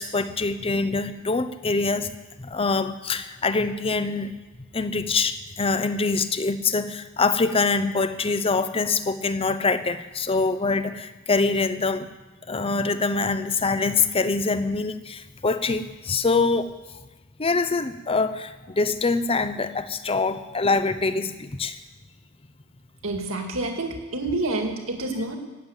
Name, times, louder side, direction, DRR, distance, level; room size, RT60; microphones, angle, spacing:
voice 1, 0.0-2.1 2.4-4.3 4.7-12.1 12.5-16.7 17.4-21.8, left 3 dB, 25° left, 12 dB, 0.7 m, -24 dB
voice 2, 23.0-25.4, right 2 dB, 65° right, 3 dB, 2.1 m, -28 dB
18.0 x 7.6 x 8.1 m, 1.2 s
head